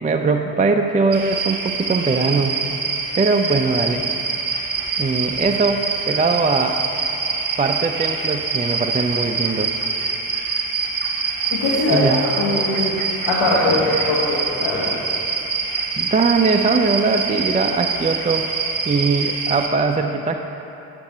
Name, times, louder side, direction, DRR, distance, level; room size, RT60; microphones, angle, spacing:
voice 1, 0.0-2.6 3.1-4.0 5.0-6.8 7.6-9.7 11.9-12.3 16.0-18.5 18.9-20.4, right 4 dB, 15° right, 5 dB, 0.4 m, -20 dB
sound 1, 1.1-19.7, right 4 dB, 40° right, 1.1 m, -25 dB
voice 2, 11.5-13.0 13.3-15.0, left 2 dB, 65° left, -5 dB, 1.4 m, -21 dB
8.7 x 6.9 x 4.3 m, 2.9 s
hypercardioid pair, 45°, 48 cm